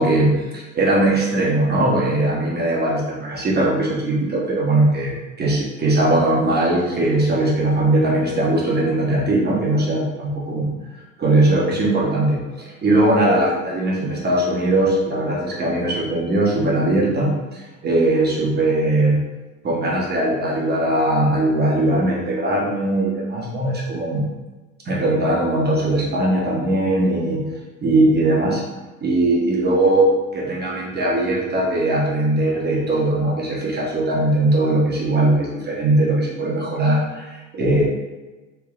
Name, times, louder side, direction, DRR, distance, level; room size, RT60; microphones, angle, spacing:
voice 1, 0.0-3.0 3.3-10.7 11.2-19.2 19.6-24.2 24.9-27.4 27.8-28.6 29.0-37.8, right 1 dB, 25° right, -4 dB, 1.1 m, -20 dB
3.3 x 3.2 x 2.4 m, 1.2 s
figure-of-eight pair, 65°, 40 cm